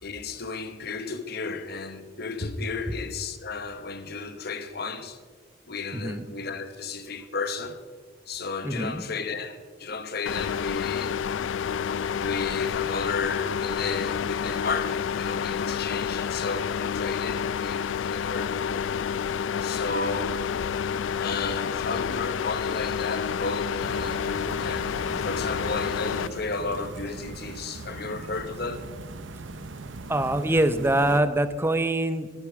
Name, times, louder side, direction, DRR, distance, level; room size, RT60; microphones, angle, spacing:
voice 1, 0.0-5.2 5.7-7.8 8.3-11.2 12.2-18.8 19.6-20.4 21.2-28.9, left 4 dB, 55° left, 1.0 m, -33 dB
voice 2, 5.9-6.2 8.6-9.0 30.1-32.3, right 1 dB, 15° right, 0.6 m, -24 dB
sound 1, 10.3-26.3, left 7 dB, 80° left, 0.4 m, -29 dB
sound 2, 23.8-31.2, right 3 dB, 80° right, 0.8 m, -40 dB
14.5 x 10.5 x 4.8 m
head